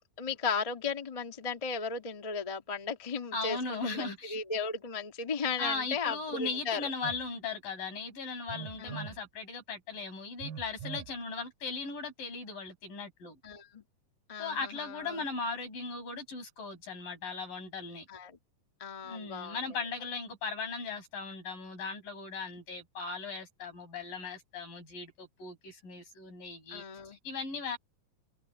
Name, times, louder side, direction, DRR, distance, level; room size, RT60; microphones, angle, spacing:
voice 1, 0.2-6.9 8.8-9.0 13.4-13.8 14.3-15.2 18.1-18.3 18.8-19.6 26.7-27.2, left 5 dB, 35° left, 0.6 m, -36 dB
voice 2, 3.3-4.4 5.6-13.4 14.4-18.1 19.0-27.8, left 4 dB, 75° left, 9.7 m, -38 dB
Telephone, 7.0-7.2 8.5-9.2 10.4-11.1, right 8 dB, 85° right, 2.7 m, -42 dB
omnidirectional pair, 3.9 m